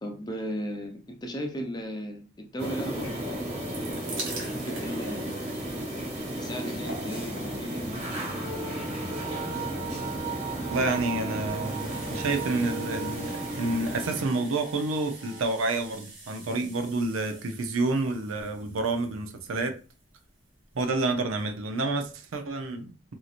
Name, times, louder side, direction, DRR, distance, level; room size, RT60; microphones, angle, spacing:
voice 1, 0.0-3.6 4.6-5.4 6.4-8.2, equal, 20° left, 3 dB, 0.5 m, -36 dB
sound 1, 2.6-14.2, right 1 dB, 35° right, 1.4 m, -34 dB
Pouring a fizzy drink, 3.6-20.4 21.2-21.3 21.5-21.6, right 2 dB, 70° right, 1.1 m, -45 dB
sound 2, 8.3-15.4, right 4 dB, 50° right, 0.8 m, -38 dB
voice 2, 10.7-19.7 20.7-23.1, right 2 dB, 90° right, 7 dB, 0.6 m, -29 dB
2.9 x 2.7 x 2.4 m, 0.35 s
head